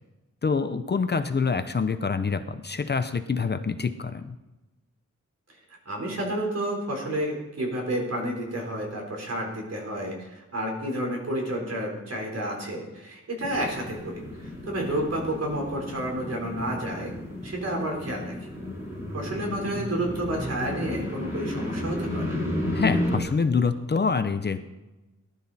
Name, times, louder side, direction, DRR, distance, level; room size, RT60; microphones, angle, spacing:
voice 1, 0.4-4.4 22.7-24.6, left 5 dB, 35° left, 9 dB, 0.7 m, -26 dB
voice 2, 5.9-17.1 17.4-18.5 19.1-22.3, right 1 dB, 60° right, 0 dB, 4.3 m, -30 dB
sound 1, 13.4-23.2, left 1 dB, 10° right, 3.8 m, -33 dB
19.0 x 11.5 x 4.2 m, 1.1 s
wide cardioid pair, 175°, 29 cm